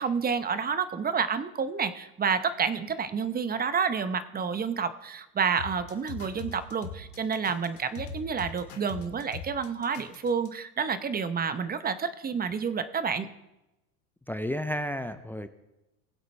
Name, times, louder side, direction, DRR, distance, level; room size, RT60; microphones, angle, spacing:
voice 1, 0.0-13.3, right 6 dB, 20° right, 12 dB, 0.8 m, -29 dB
sound 1, 5.6-10.5, left 5 dB, 80° left, 1.9 m, -41 dB
voice 2, 14.3-15.5, equal, 5° left, 11 dB, 0.4 m, -32 dB
20.0 x 7.9 x 3.3 m, 0.96 s
hypercardioid pair, 85°, 45 cm